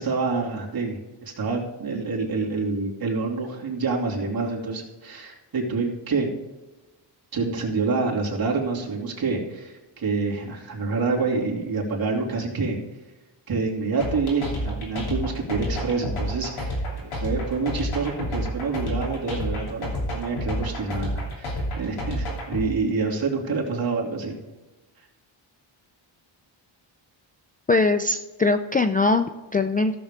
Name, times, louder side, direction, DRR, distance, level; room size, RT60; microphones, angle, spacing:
voice 1, 0.0-6.3 7.3-12.8 13.5-19.9 20.1-24.4, right 4 dB, 45° right, -2 dB, 2.8 m, -27 dB
sound 1, 14.0-22.7, left 1 dB, 80° left, 2.9 m, -29 dB
voice 2, 27.7-30.0, left 3 dB, 20° left, 8 dB, 0.4 m, -21 dB
15.0 x 7.0 x 3.7 m, 1.1 s
cardioid pair, 100°, 48 cm